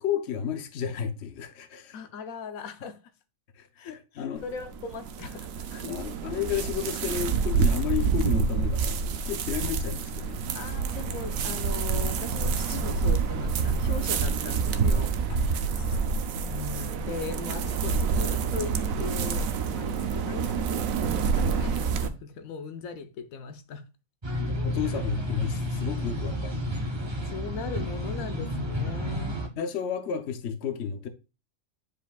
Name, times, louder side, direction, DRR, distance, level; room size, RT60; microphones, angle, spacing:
voice 1, 0.0-2.0 3.6-4.4 5.8-10.5 15.3-15.4 24.4-26.7 27.0-27.3 29.6-31.1, left 8 dB, 60° left, 1.0 m, -32 dB
voice 2, 1.9-3.0 3.8-5.9 10.5-15.2 16.4-23.8 27.3-29.4, left 5 dB, 85° left, 1.2 m, -39 dB
sound 1, 4.4-22.1, right 5 dB, 80° right, 1.1 m, -27 dB
sound 2, 24.2-29.5, equal, 25° right, 0.8 m, -31 dB
9.2 x 5.1 x 2.3 m
omnidirectional pair, 1.4 m